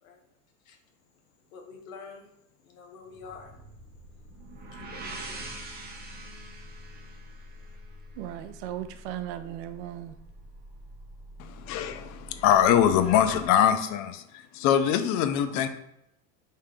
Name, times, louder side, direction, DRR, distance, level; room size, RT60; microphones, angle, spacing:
voice 1, 1.5-2.3 2.6-3.5 4.7-5.4, left 4 dB, 75° left, 1.0 m, -47 dB
sound 1, 3.0-13.5, left 1 dB, 5° left, 0.8 m, -48 dB
sound 2, 4.3-8.1, right 3 dB, 25° right, 0.8 m, -43 dB
voice 2, 8.1-10.2, right 12 dB, 60° right, 0.5 m, -37 dB
voice 3, 11.4-15.7, left 9 dB, 45° left, 0.5 m, -23 dB
3.6 x 2.7 x 3.6 m
supercardioid pair, 110°, 41 cm